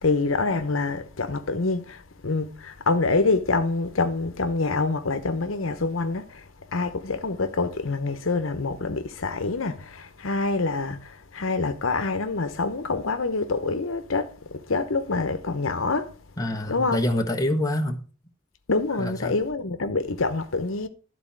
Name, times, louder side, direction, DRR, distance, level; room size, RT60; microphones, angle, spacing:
voice 1, 0.0-6.2 6.7-11.0 11.3-14.3 14.7-16.1 16.7-17.0 18.7-20.9, left 3 dB, 80° left, 1.0 m, -26 dB
voice 2, 16.4-18.0 19.0-19.4, left 1 dB, 20° left, 1.3 m, -26 dB
12.5 x 4.2 x 7.4 m
head